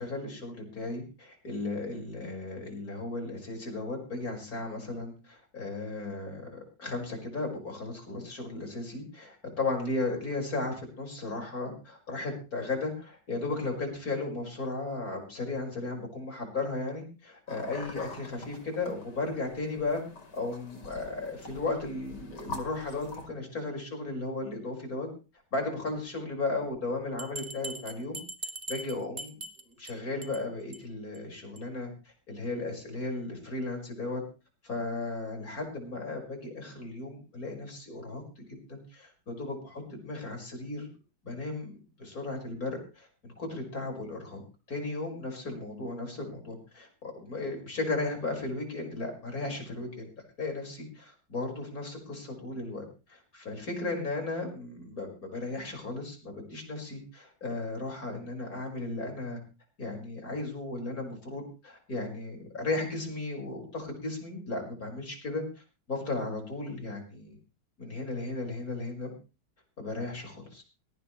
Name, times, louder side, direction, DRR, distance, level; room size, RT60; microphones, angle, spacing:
voice 1, 0.0-20.0 20.3-25.1 25.5-28.2 28.7-29.4 29.6-31.9 32.3-34.2 34.6-38.4 38.7-40.9 41.2-41.7 42.0-44.4 44.7-50.1 50.4-59.4 59.8-65.4 65.9-67.4 67.8-69.1 69.8-70.6, left 2 dB, 55° left, 2 dB, 5.8 m, -35 dB
sound 1, 17.5-23.3, left 3 dB, 80° left, 3.6 m, -45 dB
Bell, 27.2-29.9 30.2-30.4 30.7-30.8 31.1-31.2 31.6-31.7, right 2 dB, 25° right, 1.4 m, -40 dB
17.5 x 17.0 x 3.2 m, 0.33 s
omnidirectional pair, 1.8 m